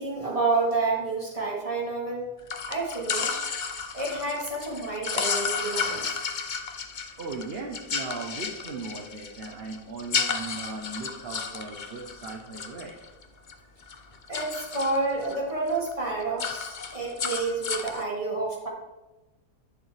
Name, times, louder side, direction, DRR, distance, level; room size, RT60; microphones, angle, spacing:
voice 1, 0.0-2.3 2.7-3.5 3.9-6.2 14.3-18.7, right 3 dB, 20° right, -5 dB, 2.6 m, -29 dB
sound 1, 2.5-13.5 13.8-15.4 15.7-15.9 16.2-18.0, left 5 dB, 65° left, 0.4 m, -32 dB
voice 2, 7.2-12.9, right 3 dB, 40° right, 0 dB, 1.0 m, -38 dB
11.0 x 6.9 x 3.4 m, 1.1 s
omnidirectional pair, 1.8 m